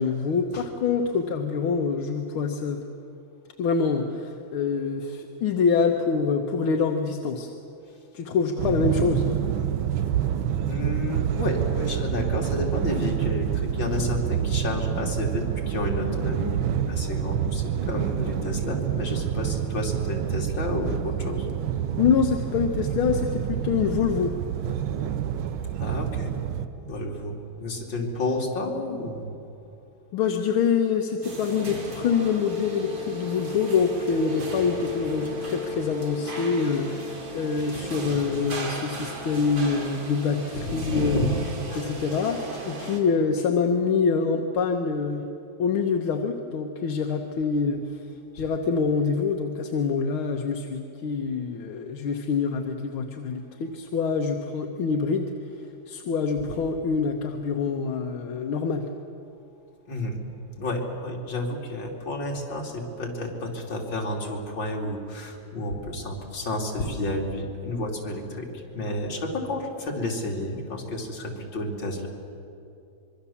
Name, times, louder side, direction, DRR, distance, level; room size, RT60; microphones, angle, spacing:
voice 1, 0.0-2.8 3.6-7.5 8.1-9.2 22.0-24.3 30.1-41.2 41.8-42.4 42.7-45.2 45.6-47.8 48.3-55.3 55.9-58.8, left 5 dB, 85° left, 3 dB, 2.0 m, -25 dB
sound 1, 8.6-26.7, right 9 dB, 90° right, 1.7 m, -27 dB
voice 2, 10.7-16.6 16.9-21.5 25.8-26.3 26.8-29.3 40.6-41.3 41.7-41.9 42.8-42.9 59.9-60.2 60.5-72.1, left 1 dB, 65° left, 0 dB, 3.7 m, -31 dB
sound 2, 31.2-43.0, left 1 dB, 70° right, 3.4 m, -35 dB
25.5 x 23.5 x 7.2 m, 2.6 s
omnidirectional pair, 2.2 m